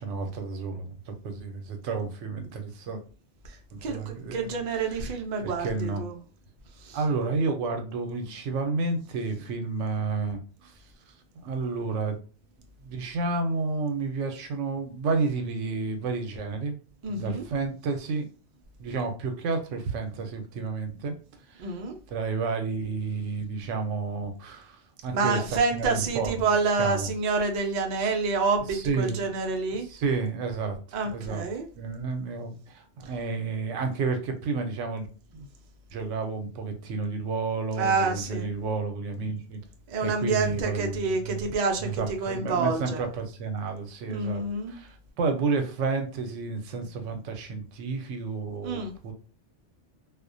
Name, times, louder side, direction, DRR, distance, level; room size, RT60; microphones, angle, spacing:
voice 1, 0.0-3.0 3.7-4.6 4.9-5.1 5.4-6.0 6.9-10.7 11.4-12.2 12.8-16.8 17.1-18.2 18.8-21.1 21.5-21.7 22.1-25.4 25.7-26.3 26.8-27.1 28.7-29.3 29.9-31.4 31.8-35.1 35.9-39.6 40.0-41.4 41.8-44.4 44.7-49.1, right 4 dB, 80° right, 5 dB, 0.9 m, -31 dB
voice 2, 3.8-6.2 6.8-7.0 17.0-17.5 21.6-22.0 25.1-29.9 30.9-31.7 35.3-35.5 37.8-38.5 39.9-43.0 44.1-44.8 48.6-48.9, right 4 dB, 60° right, 3 dB, 0.4 m, -28 dB
2.3 x 2.1 x 2.5 m, 0.36 s
omnidirectional pair, 1.2 m